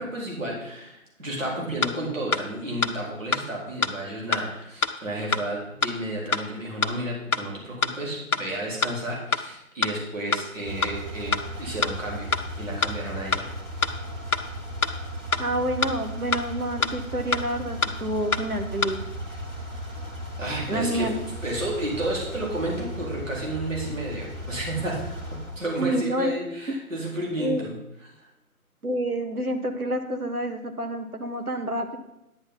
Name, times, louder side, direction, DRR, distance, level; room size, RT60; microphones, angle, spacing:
voice 1, 0.0-13.5 20.4-21.1 21.4-25.0 25.6-27.7 28.2-28.3, right 1 dB, 60° right, -3 dB, 4.2 m, -32 dB
sound 1, 1.8-1.9 2.3-2.4 2.8-2.9 3.3-3.4 3.8-3.9 4.3-4.4 4.8-4.9 5.3-5.4 5.8-5.9 6.3-6.4 6.8-6.9 7.3-7.4 7.8-7.9 8.3-8.4 8.8-8.9 9.3-9.4 9.8-9.9 10.3-10.4 10.8-10.9 11.3-11.4 11.8-11.9 12.3-12.4 12.8-12.9 13.3-13.4 13.8-13.9 14.3-14.4 14.8-14.9 15.3-15.4 15.8-15.9 16.3-16.4 16.8-16.9 17.3-17.4 17.8-17.9 18.3-18.4 18.8-18.9, left 4 dB, 75° left, 0.9 m, -24 dB
sound 2, 10.6-25.7, equal, 10° left, 1.3 m, -36 dB
voice 2, 15.4-19.0 20.7-21.1 25.8-26.3 26.7-26.8 27.4-27.6 28.8-32.0, right 1 dB, 85° right, 5 dB, 1.6 m, -28 dB
10.5 x 9.0 x 4.0 m, 0.87 s
figure-of-eight pair, 150°, 44 cm